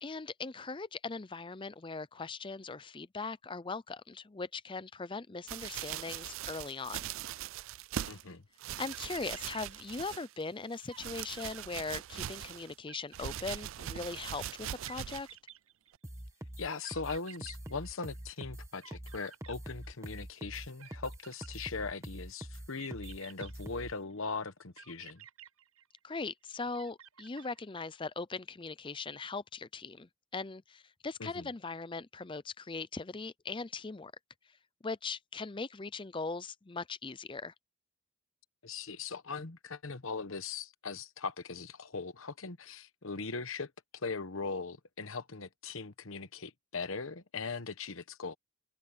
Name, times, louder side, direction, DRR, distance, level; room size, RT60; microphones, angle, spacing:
voice 1, 0.0-7.1 8.8-15.3 26.0-34.1 34.5-34.6 34.8-37.5, left 4 dB, 20° left, 0.5 m, -40 dB
sound 1, 5.5-8.2 8.6-10.4 10.7-12.7 13.1-15.3 15.9-16.0, right 11 dB, 60° right, 0.3 m, -41 dB
voice 2, 8.1-8.4 16.6-25.2 31.2-31.5 38.6-48.3, left 4 dB, 65° left, 1.1 m, -40 dB
sound 2, 8.9-10.3 10.6-10.7 10.9-12.3 12.9-14.3 14.8-16.2 16.8-18.5 18.8-20.2 20.8-22.0 22.8-24.2 24.8-26.3 26.7-28.0, right 9 dB, 80° right, 7.1 m, -54 dB
sound 3, 16.0-23.9, equal, 15° right, 1.3 m, -44 dB
open air
head